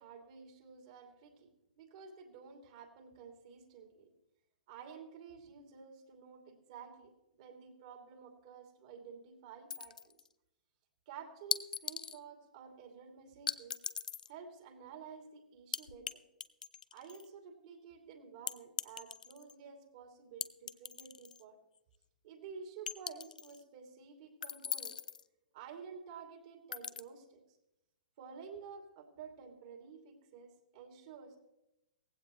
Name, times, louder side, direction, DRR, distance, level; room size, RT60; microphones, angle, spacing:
voice 1, 0.0-1.5 1.8-4.1 4.7-10.1 11.1-13.8 14.3-16.2 16.9-21.6 22.2-25.0 25.5-27.4 28.2-31.4, right 6 dB, 50° right, 3 dB, 2.7 m, -51 dB
sound 1, 9.7-10.3 11.5-12.2 13.5-14.3 15.7-16.1 16.4-17.3 18.5-19.5 20.4-21.4 21.8-21.9 22.9-23.6 24.4-25.2 26.7-27.0, left 7 dB, 70° left, 0.6 m, -40 dB
18.0 x 15.5 x 3.1 m, 0.89 s
figure-of-eight pair, 110°, 4 cm